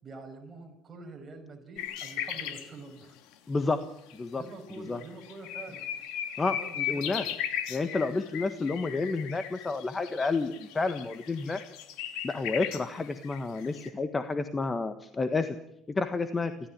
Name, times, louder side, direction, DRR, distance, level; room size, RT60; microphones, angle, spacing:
voice 1, 0.0-3.2 4.3-5.9 6.4-7.4, right 3 dB, 25° right, 1 dB, 5.7 m, -46 dB
sound 1, 1.8-2.7 4.1-4.2 4.7-4.8 5.0-13.9, left 10 dB, 80° left, 3.1 m, -37 dB
voice 2, 3.5-3.8 4.1-4.4 4.8-5.0 6.4-7.3 7.7-11.6 12.2-15.6 15.9-16.5, left 3 dB, 20° left, 9 dB, 1.5 m, -30 dB
29.5 x 14.0 x 8.9 m, 0.77 s
cardioid pair, 115°, 0 cm